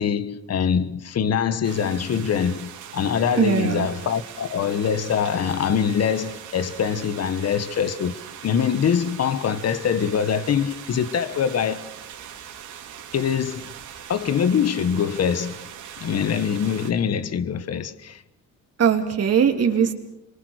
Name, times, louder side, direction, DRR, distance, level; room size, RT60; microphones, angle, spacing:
voice 1, 0.0-11.9 13.1-13.7 14.1-15.7 16.0-18.2, left 7 dB, 55° left, 1.5 m, -24 dB
sound 1, 1.6-16.9, right 9 dB, 75° right, 3.4 m, -41 dB
voice 2, 3.4-3.9 18.8-19.9, right 7 dB, 55° right, 3.1 m, -20 dB
27.0 x 23.5 x 6.6 m
cardioid pair, 90°, 30 cm